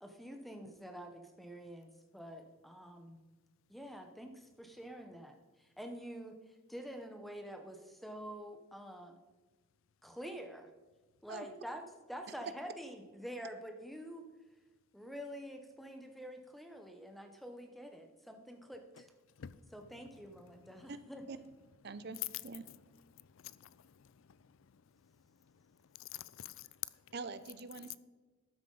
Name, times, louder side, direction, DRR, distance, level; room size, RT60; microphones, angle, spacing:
voice 1, 0.0-3.2 3.7-6.4 6.7-9.2 10.0-10.7 11.2-14.3 14.9-19.1 19.7-21.4, equal, ahead, 0.8 m, -47 dB
voice 2, 21.8-22.7 27.1-27.9, right 4 dB, 50° right, 0.6 m, -44 dB
voice 3, 23.1-25.1 25.5-25.6 25.9-27.0 27.9-28.0, left 13 dB, 70° left, 0.4 m, -49 dB
12.5 x 9.1 x 3.9 m
head